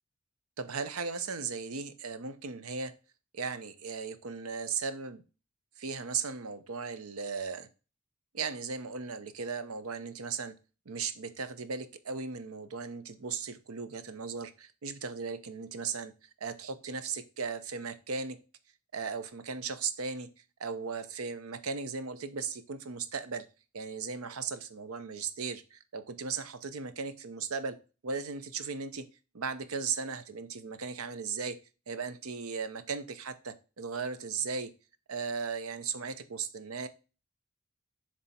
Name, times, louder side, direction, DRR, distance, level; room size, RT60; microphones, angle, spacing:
voice 1, 0.6-2.9 3.3-5.2 5.8-7.7 8.3-10.5 10.9-16.1 16.4-18.4 18.9-20.3 20.6-23.4 23.7-27.8 28.0-29.1 29.3-31.6 31.9-34.7 35.1-36.9, right 5 dB, 80° right, 12 dB, 0.7 m, -37 dB
7.0 x 3.4 x 4.2 m, 0.32 s
head